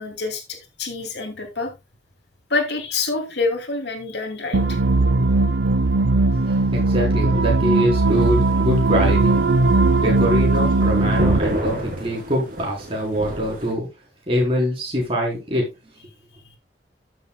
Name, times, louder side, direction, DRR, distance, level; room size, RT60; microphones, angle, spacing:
voice 1, 0.0-1.7 2.5-4.8, left 3 dB, 70° left, 2.7 m, -27 dB
sound 1, 4.5-11.4, right 3 dB, 80° right, 0.7 m, -18 dB
voice 2, 6.5-9.5 9.8-13.9 14.3-15.7, equal, 30° right, 4.0 m, -23 dB
sound 2, 8.1-13.7, right 1 dB, 50° right, 3.1 m, -30 dB
13.5 x 7.8 x 2.3 m
head